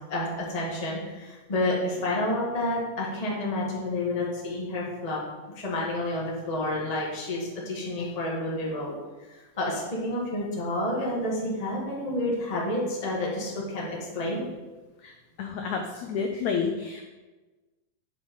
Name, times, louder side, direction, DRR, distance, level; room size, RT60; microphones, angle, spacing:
voice 1, 0.1-5.2 5.6-8.9 9.6-14.4, left 1 dB, 25° left, -4 dB, 0.7 m, -29 dB
voice 2, 15.0-17.0, left 5 dB, 85° left, 3 dB, 1.6 m, -30 dB
8.4 x 4.8 x 5.4 m, 1.2 s
omnidirectional pair, 4.1 m